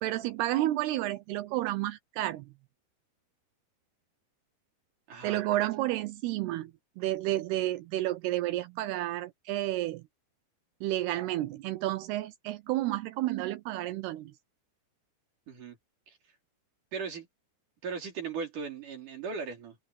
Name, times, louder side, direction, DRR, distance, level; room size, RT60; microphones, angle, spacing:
voice 1, 0.0-2.5 5.2-6.7 7.0-10.0 10.8-14.3, right 15 dB, 80° right, 2.5 m, -31 dB
voice 2, 5.1-5.4 15.5-15.8 16.1-16.2 16.9-17.3 17.8-19.8, right 5 dB, 50° right, 4.8 m, -37 dB
open air
omnidirectional pair, 5.1 m